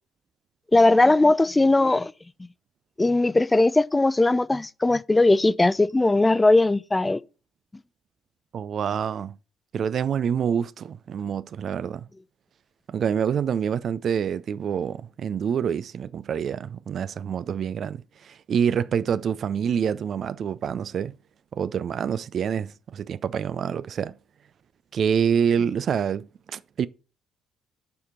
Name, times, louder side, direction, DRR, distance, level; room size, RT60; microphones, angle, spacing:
voice 1, 0.7-2.1 3.0-7.2, left 2 dB, 20° left, 0.4 m, -19 dB
voice 2, 8.5-9.3 9.7-12.1 12.9-21.1 21.5-24.2 24.9-26.9, right 7 dB, 50° right, 0.4 m, -26 dB
6.9 x 5.0 x 5.8 m
hypercardioid pair, 50°, 0 cm